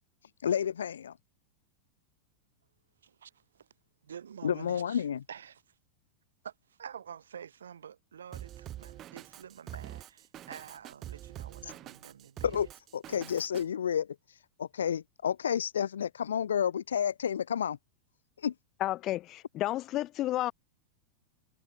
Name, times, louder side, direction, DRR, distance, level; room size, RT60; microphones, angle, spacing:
voice 1, 0.4-1.2 4.4-5.2 11.6-11.7 12.4-17.8 18.4-18.5, left 8 dB, 65° left, 2.0 m, -31 dB
voice 2, 3.0-3.7 4.0-5.7 6.4-12.6, right 8 dB, 65° right, 3.7 m, -48 dB
Drum kit, 8.3-13.6, right 12 dB, 30° right, 1.1 m, -45 dB
voice 3, 18.8-20.5, left 15 dB, 35° left, 0.9 m, -31 dB
figure-of-eight pair, 90°, 0 cm